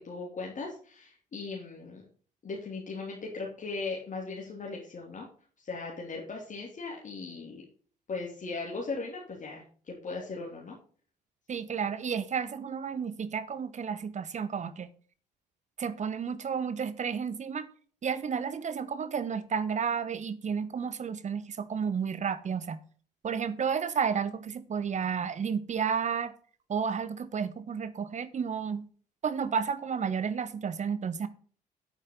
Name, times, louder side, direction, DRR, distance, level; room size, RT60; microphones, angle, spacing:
voice 1, 0.0-2.0 2.4-5.3 5.6-7.6 8.1-10.8, left 3 dB, 40° left, 3.0 m, -38 dB
voice 2, 11.5-14.9 15.8-17.7 18.0-22.8 23.2-26.3 26.7-28.8 29.2-31.3, right 6 dB, 35° right, 1.2 m, -32 dB
9.7 x 8.9 x 3.8 m
figure-of-eight pair, 50°, 20 cm